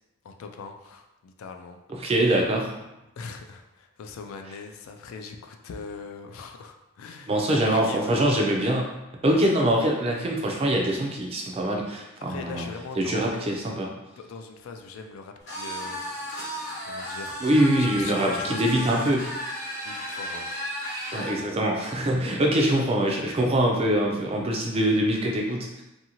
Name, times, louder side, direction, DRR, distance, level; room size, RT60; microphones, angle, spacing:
voice 1, 0.2-2.1 3.2-8.1 12.2-13.5 14.2-16.4 16.9-17.4 17.8-19.0 19.8-20.5, left 4 dB, 65° left, 5 dB, 0.3 m, -41 dB
voice 2, 1.9-2.7 7.3-9.0 9.2-12.7 13.0-13.9 17.4-19.2 21.1-25.8, right 1 dB, 25° right, 0 dB, 0.3 m, -24 dB
sound 1, 15.5-21.4, equal, 50° left, 0.9 m, -34 dB
2.6 x 2.6 x 2.8 m, 0.95 s
head